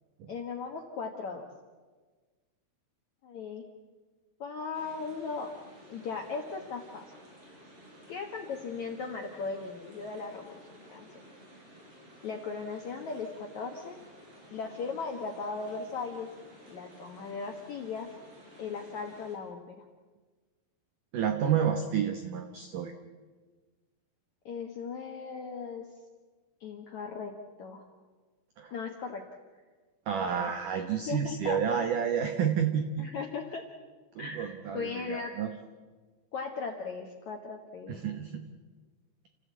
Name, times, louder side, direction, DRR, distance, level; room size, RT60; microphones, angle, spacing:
voice 1, 0.3-1.4 3.2-3.7 4.4-5.5 5.9-7.0 8.1-11.1 12.2-14.0 14.5-16.3 16.7-18.1 18.6-19.8 24.4-25.9 26.6-27.9 28.7-29.2 30.2-31.6 33.0-33.6 34.2-35.4 36.3-38.0, left 5 dB, 70° left, 2 dB, 1.8 m, -38 dB
sound 1, 4.7-19.4, equal, 30° right, 5.9 m, -54 dB
voice 2, 21.1-22.9 28.6-28.7 30.1-33.1 34.2-35.5 37.9-38.4, right 8 dB, 80° right, 6 dB, 1.8 m, -30 dB
29.5 x 15.0 x 8.4 m, 1.4 s
omnidirectional pair, 5.4 m